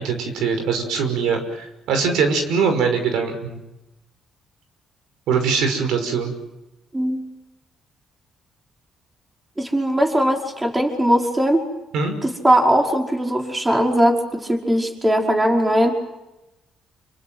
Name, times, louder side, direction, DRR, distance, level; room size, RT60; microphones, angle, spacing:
voice 1, 0.0-3.6 5.3-6.3 11.9-12.1, right 5 dB, 90° right, 6 dB, 5.9 m, -22 dB
voice 2, 9.6-11.6 12.2-15.9, equal, 15° right, 2 dB, 5.2 m, -19 dB
28.5 x 25.5 x 7.9 m, 0.98 s
cardioid pair, 90°, 0 cm